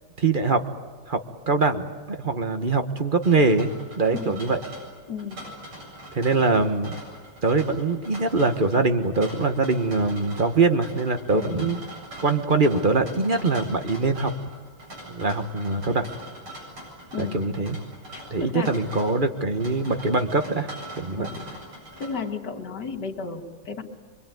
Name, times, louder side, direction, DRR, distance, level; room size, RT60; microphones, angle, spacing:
voice 1, 0.2-0.6 1.1-3.7 4.0-4.6 6.1-6.9 7.4-11.8 12.2-14.3 15.1-16.1 17.2-17.8 18.3-21.3, right 3 dB, 30° right, 8 dB, 1.0 m, -23 dB
sound 1, 3.2-22.4, right 1 dB, 75° right, 8.8 m, -42 dB
voice 2, 4.1-4.4 5.1-5.4 11.3-11.6 17.1-17.4 18.1-18.7 21.2-21.5 22.0-23.8, left 5 dB, 50° left, 3 dB, 2.5 m, -33 dB
25.0 x 24.0 x 9.2 m, 1.4 s
omnidirectional pair, 2.3 m